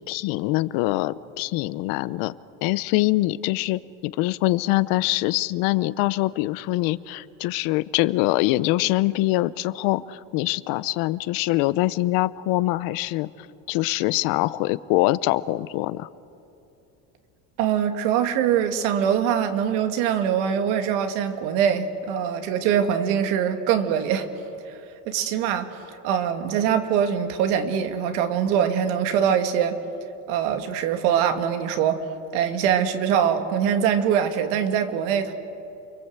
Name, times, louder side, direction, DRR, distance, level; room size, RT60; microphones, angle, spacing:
voice 1, 0.1-2.3 2.6-13.3 13.7-16.1, left 18 dB, 75° left, 17 dB, 0.9 m, -24 dB
voice 2, 17.6-24.3 25.1-25.7 26.0-29.8 30.3-32.0 32.3-35.3, right 8 dB, 90° right, 6 dB, 2.4 m, -23 dB
29.5 x 23.5 x 8.1 m, 2.7 s
cardioid pair, 150°, 35 cm